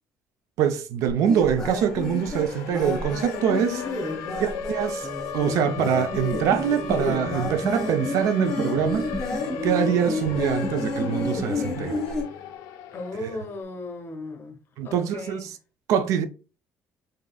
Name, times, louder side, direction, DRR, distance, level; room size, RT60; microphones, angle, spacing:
voice 1, 0.6-3.8 4.4-9.1 9.6-12.0 13.2-13.3 14.8-15.6 15.9-16.3, right 8 dB, 70° right, 0.4 m, -24 dB
Siren, 1.1-1.2 1.5-13.5, left 7 dB, 85° left, 0.4 m, -36 dB
sound 1, 1.2-12.2, left 2 dB, 10° left, 1.3 m, -31 dB
voice 2, 3.7-4.5 12.9-14.6 14.8-15.5, left 2 dB, 40° left, 0.9 m, -37 dB
sound 2, 5.8-12.5, right 1 dB, 20° right, 0.6 m, -35 dB
3.9 x 3.7 x 2.3 m
cardioid pair, 130°, 6 cm